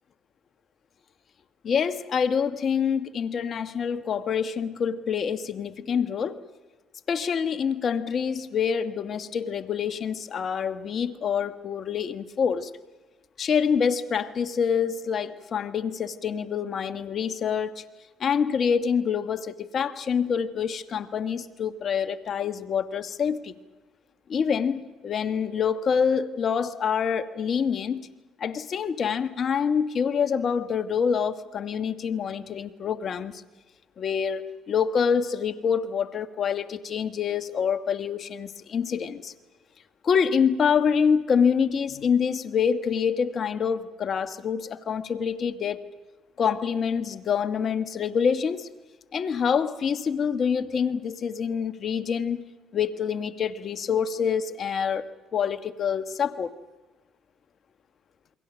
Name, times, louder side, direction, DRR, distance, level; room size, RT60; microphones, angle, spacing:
voice 1, 1.6-6.4 7.1-12.7 13.4-17.9 18.2-23.6 24.3-28.1 28.4-33.4 34.0-39.3 40.0-45.8 46.4-48.7 49.1-55.0 55.3-56.5, left 7 dB, 50° left, 1.4 m, -26 dB
28.5 x 23.0 x 6.2 m
supercardioid pair, 75°, 0 cm